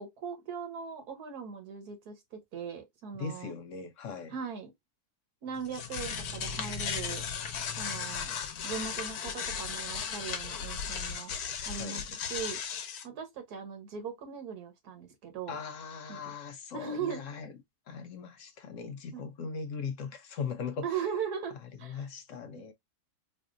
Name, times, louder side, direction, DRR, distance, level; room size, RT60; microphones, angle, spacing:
voice 1, 0.0-3.5 4.3-4.7 5.4-7.3 7.8-8.3 8.6-11.3 11.7-12.0 12.3-12.6 13.0-15.6 16.1-16.3 16.7-17.2 19.1-19.5 20.8-22.0 22.5-22.7, right 7 dB, 80° right, 1.6 m, -39 dB
voice 2, 3.2-4.4 11.7-12.0 15.5-17.6 17.9-21.0 21.6-22.7, left 5 dB, 70° left, 0.8 m, -39 dB
sound 1, 5.5-13.0, left 7 dB, 85° left, 1.3 m, -36 dB
4.2 x 2.5 x 2.4 m
omnidirectional pair, 1.6 m